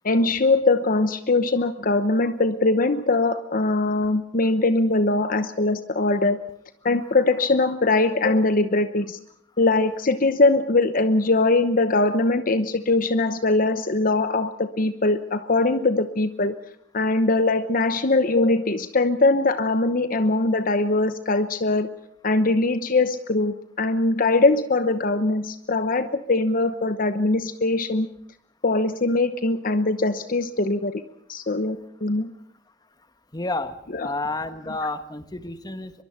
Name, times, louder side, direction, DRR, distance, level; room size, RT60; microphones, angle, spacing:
voice 1, 0.0-6.4 6.8-9.2 9.6-16.5 16.9-21.9 22.2-28.1 28.6-31.0 31.3-32.3 33.9-34.1, left 2 dB, 45° left, 11 dB, 1.0 m, -21 dB
voice 2, 33.3-36.0, left 2 dB, 20° left, 10 dB, 1.5 m, -30 dB
23.5 x 22.5 x 5.8 m, 0.69 s
head